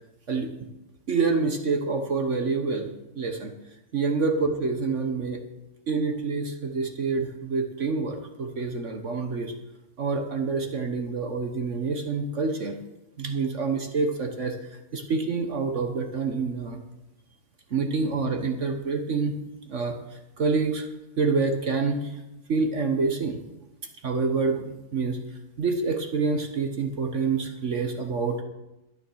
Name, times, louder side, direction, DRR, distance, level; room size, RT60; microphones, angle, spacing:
voice 1, 1.1-2.9 3.1-3.5 3.9-5.4 5.9-9.5 10.0-12.8 13.2-16.8 17.7-19.4 19.7-20.9 21.2-22.2 22.5-23.4 24.0-25.2 25.6-28.4, right 4 dB, 50° right, 5 dB, 1.4 m, -27 dB
12.5 x 10.0 x 6.3 m, 0.96 s
omnidirectional pair, 1.8 m